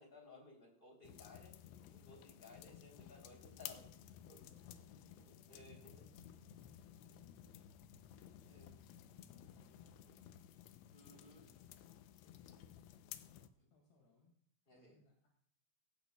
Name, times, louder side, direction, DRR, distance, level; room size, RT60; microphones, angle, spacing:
voice 1, 0.0-3.8 4.3-4.4 5.5-5.9 8.5-8.7 10.9-11.5 13.6-13.7 14.7-15.0, left 2 dB, 15° left, -1 dB, 2.5 m, -59 dB
sound 1, 1.0-13.5, left 11 dB, 80° left, 2.7 m, -56 dB
voice 2, 2.6-3.0 3.5-3.8 4.2-5.1 5.5-7.7 8.2-10.6 11.1-12.0 12.2-14.3 14.7-15.3, left 4 dB, 60° left, -1 dB, 3.9 m, -70 dB
sound 2, 3.3-10.6, left 1 dB, 55° right, 8.6 m, -69 dB
17.0 x 16.5 x 2.3 m, 0.62 s
omnidirectional pair, 5.5 m